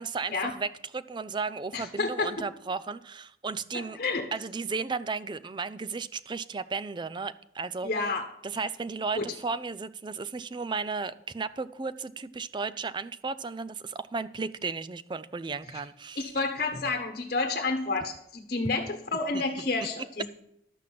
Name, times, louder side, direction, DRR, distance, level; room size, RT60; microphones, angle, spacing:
voice 1, 0.0-4.0 4.3-7.9 8.4-16.3 19.3-19.4, right 4 dB, 25° right, 14 dB, 0.4 m, -34 dB
voice 2, 1.7-2.3 3.7-4.3 7.8-8.2 9.1-9.3 16.2-20.3, left 3 dB, 50° left, 4 dB, 1.2 m, -30 dB
12.5 x 5.9 x 7.5 m, 0.77 s
head